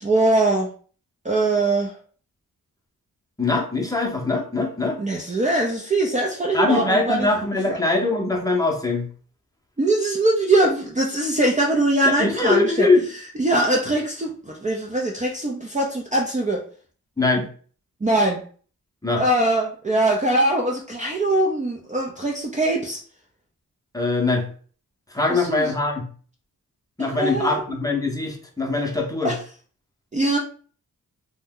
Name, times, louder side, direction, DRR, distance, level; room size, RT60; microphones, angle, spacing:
voice 1, 0.0-0.7 1.2-1.9 5.0-7.3 7.7-7.8 9.8-12.9 13.4-16.6 18.0-18.4 19.2-23.0 25.3-25.7 27.0-27.6 29.2-29.4 30.1-30.4, right 2 dB, 20° right, -2 dB, 0.5 m, -22 dB
voice 2, 3.4-5.0 6.5-9.1 12.1-13.0 17.2-17.5 19.0-19.2 23.9-24.5 25.1-26.1 27.0-29.3, left 3 dB, 10° left, 0 dB, 0.7 m, -22 dB
2.6 x 2.2 x 3.6 m, 0.42 s
wide cardioid pair, 90°, 35 cm